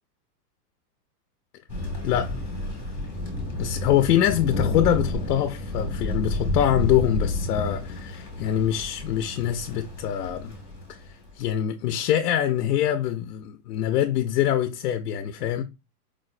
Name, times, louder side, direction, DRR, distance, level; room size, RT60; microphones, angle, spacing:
Thunder, 1.7-11.4, left 2 dB, 5° right, 0.4 m, -31 dB
voice 1, 2.0-2.3 3.6-10.6 10.9-15.6, left 11 dB, 75° left, 0.5 m, -24 dB
4.7 x 2.0 x 2.4 m
supercardioid pair, 160°, 48 cm